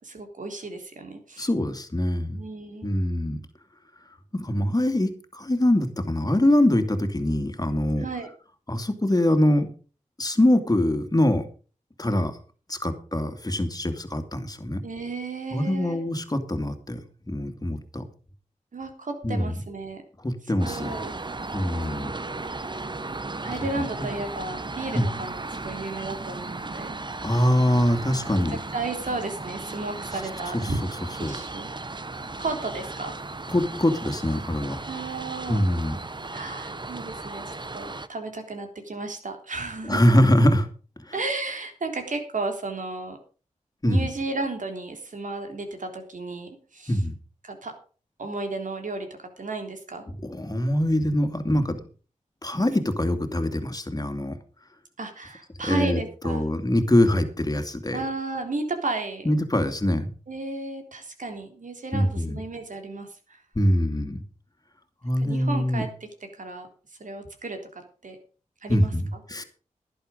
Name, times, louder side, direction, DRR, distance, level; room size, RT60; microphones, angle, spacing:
voice 1, 0.0-1.5 2.3-2.9 8.0-8.3 14.8-16.0 18.7-20.0 20.6-21.1 23.4-27.0 28.7-30.8 31.2-31.7 32.4-33.1 34.9-35.7 36.3-40.0 41.1-43.2 43.8-47.0 47.4-47.7 48.2-50.0 55.0-56.4 57.9-59.4 60.3-63.4 65.2-66.1 66.4-66.7 67.0-68.2 68.6-68.9, right 3 dB, 70° right, 5 dB, 3.6 m, -33 dB
voice 2, 1.4-2.4 2.8-3.4 4.3-8.1 8.7-9.7 10.2-11.4 12.0-12.4 12.7-14.8 15.5-17.0 17.2-18.0 19.2-19.6 20.2-20.9 21.5-22.1 22.4-22.6 23.4-23.8 24.9-25.1 27.2-28.6 31.2-31.4 33.5-34.8 35.5-36.0 39.9-40.7 43.8-44.1 46.9-47.1 50.2-51.8 52.4-54.3 55.6-58.0 59.2-60.1 61.9-62.4 63.5-64.2 65.0-65.8 68.7-69.4, left 1 dB, 25° left, 7 dB, 2.7 m, -23 dB
sound 1, 20.6-38.1, right 3 dB, 35° right, 1.0 m, -36 dB
11.5 x 11.0 x 5.3 m, 0.38 s
cardioid pair, 45°, 14 cm